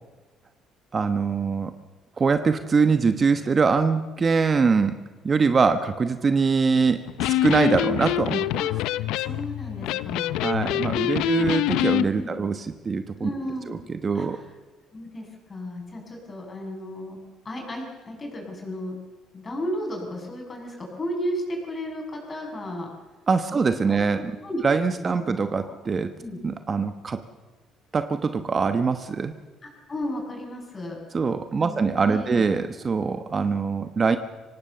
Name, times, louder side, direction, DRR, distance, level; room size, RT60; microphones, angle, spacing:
voice 1, 0.9-1.7 2.2-4.9 5.2-8.5 10.4-13.3 13.7-14.4 23.3-24.3 24.6-26.1 26.4-27.2 27.9-29.3 31.1-34.2, right 5 dB, 30° right, 9 dB, 1.1 m, -23 dB
Electric guitar, 7.1-12.1, left 14 dB, 90° left, 0.6 m, -25 dB
voice 2, 9.2-10.6 12.1-12.3 13.2-13.8 14.1-14.4 14.9-17.2 17.5-19.0 19.3-22.9 23.5-24.6 25.1-25.4 25.6-25.7 26.2-26.4 29.6-31.0 31.6-32.4, equal, 30° left, 1 dB, 7.1 m, -34 dB
24.5 x 18.0 x 6.9 m, 1.3 s
cardioid pair, 110°, 0 cm